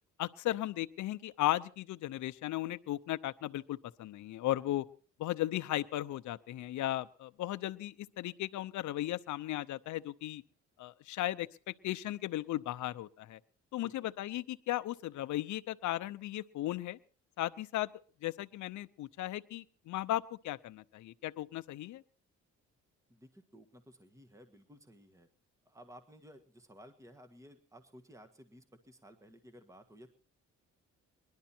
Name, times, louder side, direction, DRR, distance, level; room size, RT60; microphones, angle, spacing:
voice 1, 0.2-4.8 5.2-10.4 10.8-13.4 13.7-17.0 17.4-17.9 18.2-22.0, left 15 dB, 70° left, 12 dB, 0.7 m, -36 dB
voice 2, 13.7-14.1 23.1-25.3 25.7-30.1, equal, 10° right, 8 dB, 1.6 m, -56 dB
21.0 x 11.5 x 4.4 m, 0.42 s
cardioid pair, 90°, 30 cm